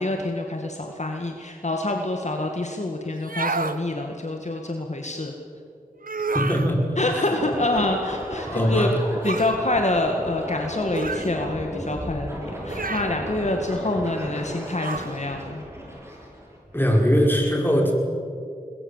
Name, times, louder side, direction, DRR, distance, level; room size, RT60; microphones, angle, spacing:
voice 1, 0.0-5.3 7.0-8.9 9.2-15.6, left 2 dB, 50° left, 3 dB, 2.1 m, -26 dB
sound 1, 3.2-3.8 6.0-6.7 9.2-9.6 10.9-11.3 12.7-13.2 14.8-15.1, right 3 dB, 70° right, 1.3 m, -29 dB
voice 2, 6.3-6.8 7.1-7.4 7.8-7.9 8.5-8.9 16.7-17.9, equal, 15° left, 0 dB, 5.7 m, -21 dB
sound 2, 7.3-16.8, equal, 15° right, 8.0 m, -35 dB
22.5 x 21.0 x 7.5 m, 2.4 s
wide cardioid pair, 45°, 15 cm